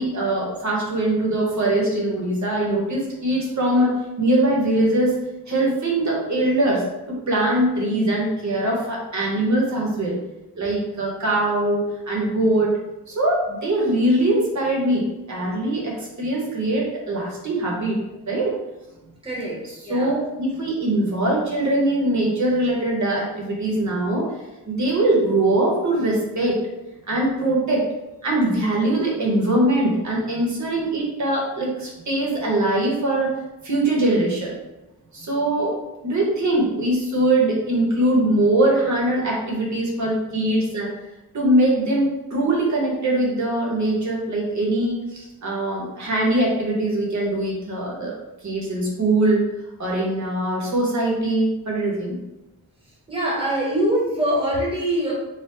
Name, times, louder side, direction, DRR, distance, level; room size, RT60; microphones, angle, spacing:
voice 1, 0.0-5.2 5.5-10.2 10.5-12.7 13.1-18.0 18.2-18.5 19.6-24.3 24.7-26.6 27.1-27.8 28.2-33.3 33.6-34.5 35.1-35.7 36.0-40.9 41.3-48.1 48.4-49.4 49.8-52.2, right 1 dB, 50° right, -3 dB, 1.2 m, -22 dB
voice 2, 19.2-19.6 19.8-20.1 53.1-55.1, right 1 dB, 15° right, -5 dB, 1.0 m, -23 dB
4.3 x 2.3 x 3.9 m, 0.98 s
wide cardioid pair, 170°, 38 cm